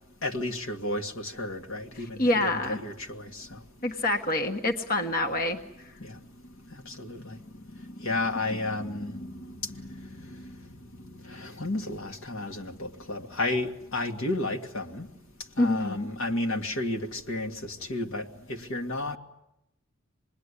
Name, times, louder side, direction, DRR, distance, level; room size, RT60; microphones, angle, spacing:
voice 1, 0.2-3.6 6.0-6.2 6.7-7.4 7.8-10.7 11.2-15.1 15.6-19.2, left 2 dB, 75° left, 2.0 m, -33 dB
voice 2, 2.0-2.8 3.8-5.6 15.6-16.1, left 2 dB, 45° left, 1.4 m, -26 dB
27.0 x 20.5 x 9.9 m
head